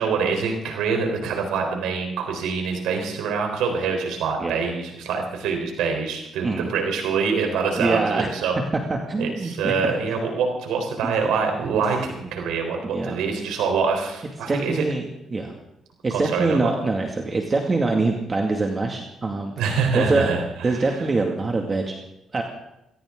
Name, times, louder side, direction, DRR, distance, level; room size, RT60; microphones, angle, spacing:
voice 1, 0.0-8.5 9.2-14.9 16.1-16.6 19.6-20.8, right 5 dB, 90° right, 3 dB, 4.0 m, -25 dB
voice 2, 7.8-8.3 8.9-9.9 11.0-11.1 12.8-13.2 14.5-15.5 16.0-19.6 19.9-20.3 20.6-22.0 22.3-22.4, right 3 dB, 30° right, 2 dB, 2.2 m, -24 dB
21.0 x 17.5 x 3.8 m, 0.86 s
cardioid pair, 90°, 0 cm